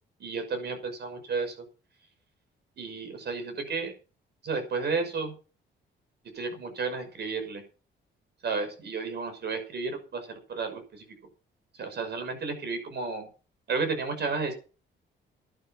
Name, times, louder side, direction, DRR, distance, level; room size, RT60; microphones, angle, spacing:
voice 1, 0.2-1.6 2.8-3.9 4.4-5.3 6.3-7.6 8.4-11.1 11.8-13.3 13.7-14.5, right 4 dB, 55° right, 8 dB, 5.9 m, -32 dB
12.0 x 11.0 x 5.9 m, 0.36 s
cardioid pair, 90°, 20 cm